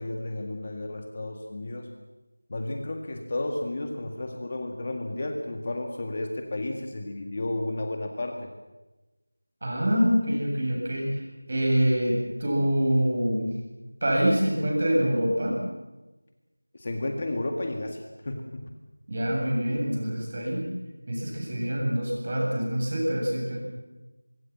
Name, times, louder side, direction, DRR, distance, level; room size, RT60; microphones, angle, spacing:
voice 1, 0.0-1.9 2.5-8.5 16.7-18.6, left 2 dB, 25° left, 3 dB, 1.8 m, -32 dB
voice 2, 9.6-11.2 11.5-13.5 14.0-15.6 19.1-20.7 21.1-23.6, equal, 30° right, -1 dB, 7.8 m, -25 dB
25.0 x 23.0 x 7.5 m, 1.1 s
figure-of-eight pair, 175°, 0 cm